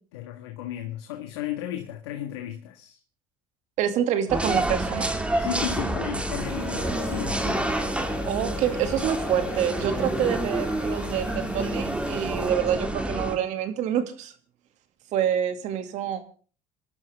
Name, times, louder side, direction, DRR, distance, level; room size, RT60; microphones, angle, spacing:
voice 1, 0.1-3.0 5.4-7.7, left 12 dB, 85° left, 1.7 m, -34 dB
voice 2, 3.8-5.1 8.3-14.3 15.1-16.2, right 9 dB, 65° right, 2.4 m, -27 dB
sound 1, 4.3-13.4, right 1 dB, 10° right, 2.4 m, -28 dB
sound 2, 6.4-12.5, left 10 dB, 65° left, 1.6 m, -41 dB
sound 3, 6.7-11.8, left 2 dB, 10° left, 4.3 m, -44 dB
27.5 x 12.5 x 3.6 m
supercardioid pair, 85°, 13 cm